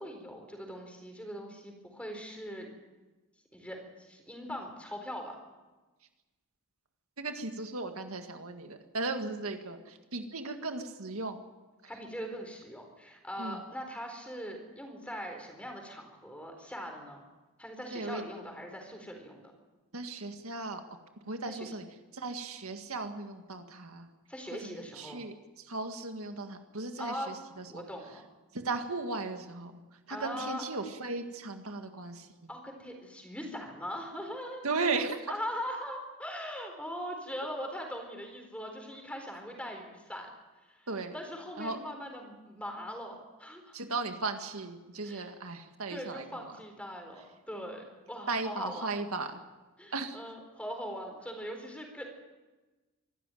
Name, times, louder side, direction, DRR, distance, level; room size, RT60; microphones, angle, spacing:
voice 1, 0.0-2.7 3.5-5.4 11.8-17.2 17.6-19.4 21.5-21.7 24.3-25.3 27.0-27.3 27.7-28.2 30.1-30.6 32.5-34.6 35.3-40.3 40.7-40.9 41.1-43.8 45.0-45.3 45.9-48.9 49.8-52.1, equal, 5° left, 3 dB, 4.2 m, -41 dB
voice 2, 7.2-11.4 13.4-13.6 17.9-18.2 19.9-20.8 21.3-21.9 22.1-24.1 24.5-27.8 28.5-32.5 34.6-35.3 40.9-41.1 41.6-41.8 43.7-46.5 48.3-49.4 49.9-50.2, right 3 dB, 80° right, 6 dB, 1.9 m, -36 dB
25.0 x 13.5 x 9.1 m, 1.2 s
head